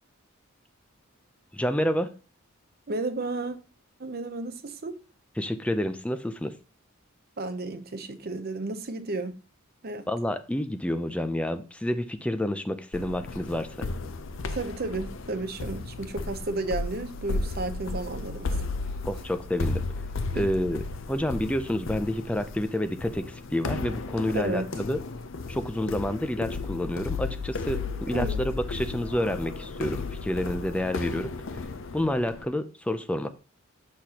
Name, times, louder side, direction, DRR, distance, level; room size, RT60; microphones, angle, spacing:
voice 1, 1.5-2.1 5.4-6.5 10.1-13.7 19.0-19.8 20.3-20.8 21.1-25.0 25.5-31.3 31.9-33.3, left 1 dB, 5° left, 0.4 m, -29 dB
voice 2, 2.9-3.6 4.0-5.0 7.4-9.4 9.8-10.1 14.5-18.6 20.3-20.5 24.3-24.7 28.1-28.4, right 2 dB, 45° right, 0.7 m, -32 dB
sound 1, 12.9-32.4, left 3 dB, 65° left, 0.5 m, -34 dB
6.5 x 5.9 x 2.8 m
head